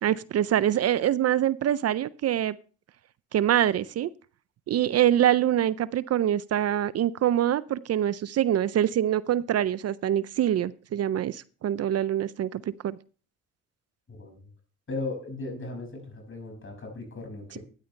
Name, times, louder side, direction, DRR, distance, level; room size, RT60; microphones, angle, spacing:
voice 1, 0.0-2.6 3.3-4.1 4.7-13.0, right 11 dB, 55° right, 18 dB, 0.5 m, -25 dB
voice 2, 14.1-14.4 14.9-17.6, left 2 dB, 40° left, 4 dB, 5.9 m, -37 dB
13.0 x 10.0 x 3.3 m, 0.38 s
supercardioid pair, 65°, 31 cm